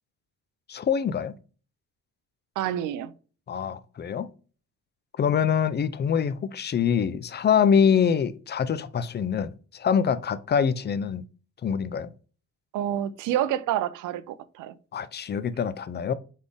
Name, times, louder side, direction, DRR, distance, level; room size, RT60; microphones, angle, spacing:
voice 1, 0.7-1.3 3.5-4.3 5.2-11.2 11.6-12.1 14.9-16.1, left 7 dB, 35° left, 0.5 m, -24 dB
voice 2, 2.6-3.1 12.7-14.7, right 11 dB, 80° right, 0.5 m, -28 dB
4.1 x 3.5 x 3.3 m
cardioid pair, 90°, 30 cm